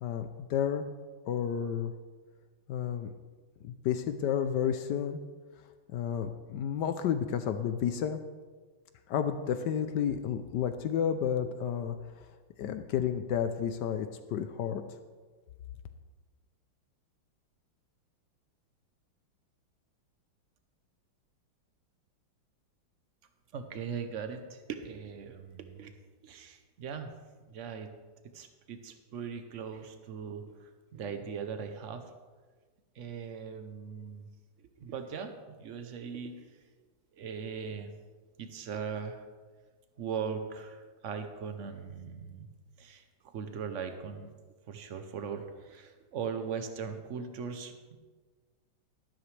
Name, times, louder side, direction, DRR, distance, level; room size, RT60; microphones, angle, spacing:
voice 1, 0.0-0.9 1.3-1.9 2.7-3.1 3.6-5.2 5.9-8.2 9.1-12.0 12.6-14.8, left 8 dB, 75° left, 9 dB, 1.0 m, -31 dB
voice 2, 23.5-25.9 26.2-27.1 27.5-27.9 28.3-32.0 32.9-34.3 34.6-36.5 37.1-37.9 38.4-39.2 40.0-42.5 42.8-44.3 44.7-48.0, right 6 dB, 75° right, 7 dB, 0.6 m, -39 dB
13.0 x 12.0 x 3.3 m, 1.4 s
omnidirectional pair, 2.3 m